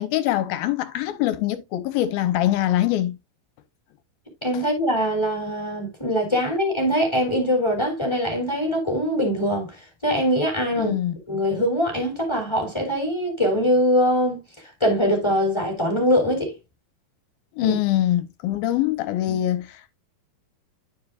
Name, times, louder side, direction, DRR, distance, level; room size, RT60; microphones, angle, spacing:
voice 1, 0.0-3.2 10.7-11.1 17.5-20.0, left 13 dB, 80° left, 2.5 m, -23 dB
voice 2, 4.4-9.8 10.0-10.9 11.3-14.4 14.8-16.5 17.6-17.8 19.3-19.4, equal, 10° left, 2.6 m, -22 dB
12.0 x 4.9 x 2.5 m
omnidirectional pair, 4.4 m